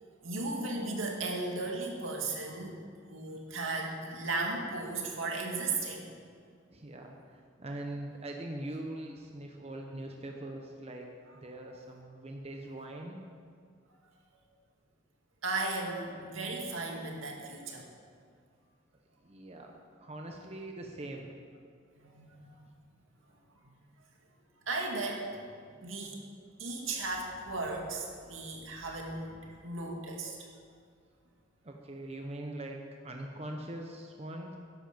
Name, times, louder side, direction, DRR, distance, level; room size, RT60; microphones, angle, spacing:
voice 1, 0.2-2.8 3.1-6.1 15.4-17.9 22.0-22.6 24.7-25.3 25.8-26.2 26.6-30.4, right 3 dB, 80° right, 0 dB, 2.2 m, -36 dB
voice 2, 6.7-11.1 11.3-13.3 19.2-19.7 20.0-21.3 31.6-34.6, right 1 dB, 30° right, 2 dB, 0.9 m, -42 dB
13.5 x 11.0 x 5.1 m, 2.1 s
head